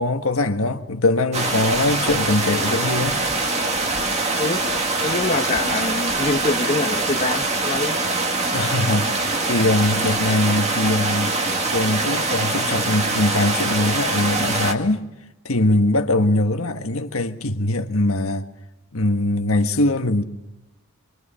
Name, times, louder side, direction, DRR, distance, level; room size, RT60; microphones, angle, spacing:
voice 1, 0.0-3.2 8.5-11.4 11.7-15.1 15.4-18.4 18.9-20.2, left 2 dB, 70° left, 1.6 m, -21 dB
sound 1, 1.3-14.7, right 3 dB, 30° right, 1.9 m, -23 dB
voice 2, 5.0-8.0, left 3 dB, 30° left, 1.5 m, -24 dB
26.5 x 24.0 x 5.7 m
head